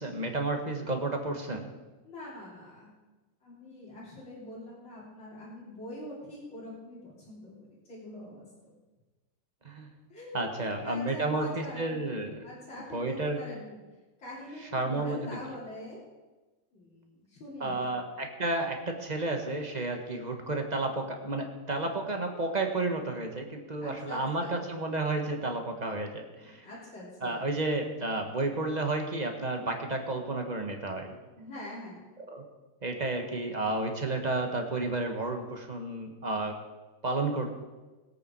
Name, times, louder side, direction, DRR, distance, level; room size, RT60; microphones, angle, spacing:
voice 1, 0.0-1.7 9.6-9.9 10.3-12.5 12.9-13.4 14.7-15.4 17.6-26.7 27.2-31.1 32.3-32.4 32.8-36.6 37.0-37.6, right 2 dB, 25° right, 4 dB, 1.5 m, -31 dB
voice 2, 2.0-2.9 3.4-8.5 10.1-12.0 12.4-13.8 14.2-16.0 16.7-17.9 23.8-24.5 26.4-27.4 31.4-32.0, left 1 dB, 90° left, -9 dB, 4.3 m, -44 dB
21.5 x 8.5 x 4.7 m, 1.2 s
omnidirectional pair, 2.0 m